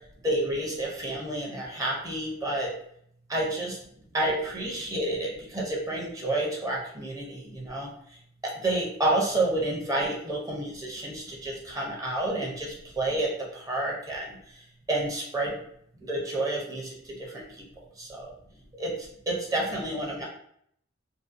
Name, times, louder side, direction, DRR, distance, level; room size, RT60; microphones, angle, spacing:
voice 1, 0.2-2.7 3.3-3.8 4.1-5.3 5.5-7.9 8.4-12.7 13.0-13.3 13.7-14.3 14.9-15.5 16.1-16.9 18.8-18.9 19.3-20.2, right 1 dB, 15° right, -3 dB, 0.5 m, -29 dB
2.6 x 2.0 x 2.4 m, 0.68 s
head